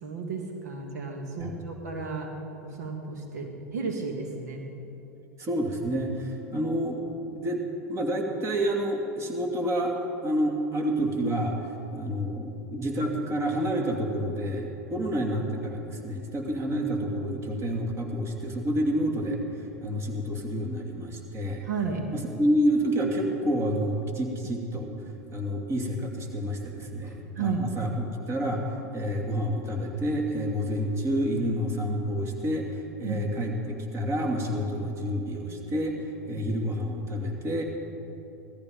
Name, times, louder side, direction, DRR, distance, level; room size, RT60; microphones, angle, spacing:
voice 1, 0.0-2.3 2.6-4.6 6.5-6.7 15.0-15.1 21.6-22.0 27.0-27.6 33.0-33.2, right 5 dB, 80° right, 2 dB, 2.0 m, -33 dB
voice 2, 5.4-7.0 7.3-7.6 7.9-10.0 10.2-11.6 11.9-19.4 19.8-21.6 22.1-24.9 25.3-28.6 28.9-32.7 33.0-36.0 36.3-37.6, equal, 30° right, 1 dB, 2.7 m, -28 dB
17.5 x 14.0 x 5.2 m, 2.9 s
hypercardioid pair, 95°, 9 cm